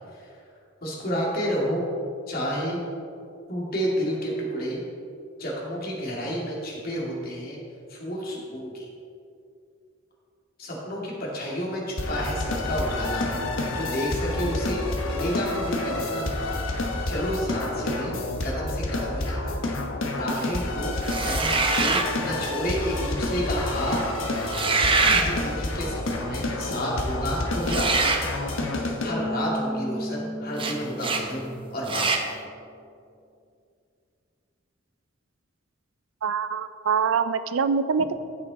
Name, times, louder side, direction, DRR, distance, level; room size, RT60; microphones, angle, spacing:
voice 1, 0.8-1.9 2.3-2.8 3.5-4.8 5.4-7.6 7.9-8.9 10.6-13.3 13.7-16.4 17.1-18.1 18.4-19.6 20.0-20.9 21.2-24.0 25.0-28.1 29.0-32.1, equal, 50° left, -4 dB, 2.3 m, -30 dB
sound 1, 12.0-29.1, left 2 dB, 85° left, 1.2 m, -29 dB
sound 2, 21.0-22.1 24.4-25.3 27.6-28.2 30.6-30.7 31.0-31.2 31.9-32.2, right 4 dB, 25° right, 0.8 m, -23 dB
Bass guitar, 29.1-32.2, left 1 dB, 5° right, 1.4 m, -34 dB
voice 2, 36.2-38.2, right 6 dB, 90° right, 12 dB, 0.5 m, -24 dB
14.5 x 5.6 x 4.1 m, 2.5 s
head